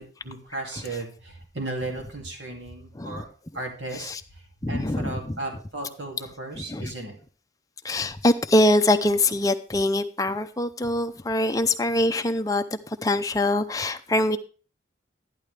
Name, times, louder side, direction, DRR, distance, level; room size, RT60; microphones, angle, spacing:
voice 1, 0.0-3.3 3.5-4.1 4.7-7.2, right 2 dB, 80° right, 1 dB, 2.4 m, -35 dB
voice 2, 4.6-5.4 6.5-6.9 7.8-14.4, left 1 dB, 20° left, 8 dB, 0.5 m, -24 dB
11.5 x 10.5 x 3.3 m, 0.39 s
head